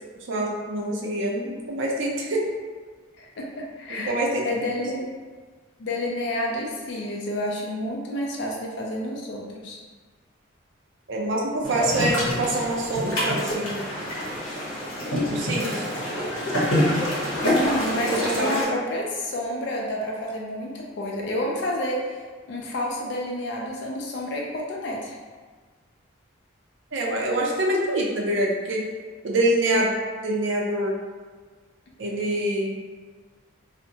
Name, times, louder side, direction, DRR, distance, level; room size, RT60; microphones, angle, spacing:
voice 1, 0.3-2.4 3.9-4.4 11.1-13.8 15.2-15.9 18.4-18.8 26.9-28.8 29.2-29.9 30.2-30.9 32.0-32.7, right 1 dB, 65° right, -2 dB, 0.5 m, -25 dB
voice 2, 3.2-4.2 4.4-5.0 5.8-9.8 17.4-22.2 22.5-25.2, left 1 dB, 55° left, -2 dB, 0.4 m, -29 dB
sound 1, 11.6-18.6, left 1 dB, 70° left, 0.8 m, -26 dB
2.6 x 2.0 x 2.7 m, 1.5 s
head